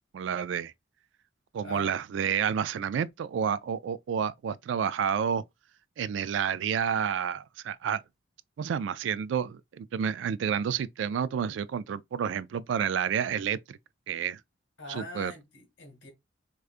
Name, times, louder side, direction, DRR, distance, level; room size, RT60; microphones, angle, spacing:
voice 1, 0.1-0.7 1.5-5.4 6.0-8.0 8.6-13.8 14.1-14.4 14.9-15.3, right 7 dB, 70° right, 0.3 m, -30 dB
voice 2, 14.8-16.1, left 1 dB, 70° left, 1.6 m, -42 dB
4.8 x 2.3 x 2.4 m
head